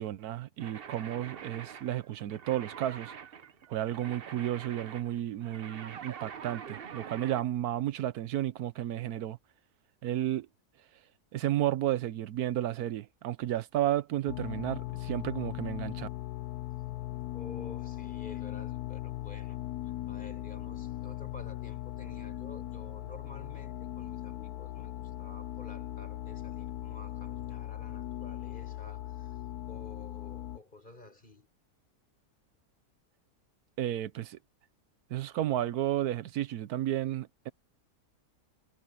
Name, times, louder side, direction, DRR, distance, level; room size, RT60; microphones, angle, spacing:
voice 1, 0.0-3.1 3.7-9.4 10.0-10.5 11.3-16.1 33.8-34.4 35.1-37.5, right 12 dB, 85° right, 1.2 m, -32 dB
sound 1, 0.6-7.5, right 7 dB, 45° right, 0.9 m, -45 dB
sound 2, 14.3-30.6, left 14 dB, 90° left, 1.1 m, -39 dB
voice 2, 17.3-19.6 19.8-29.4 29.7-31.5, left 2 dB, 30° left, 5.0 m, -51 dB
omnidirectional pair, 1.6 m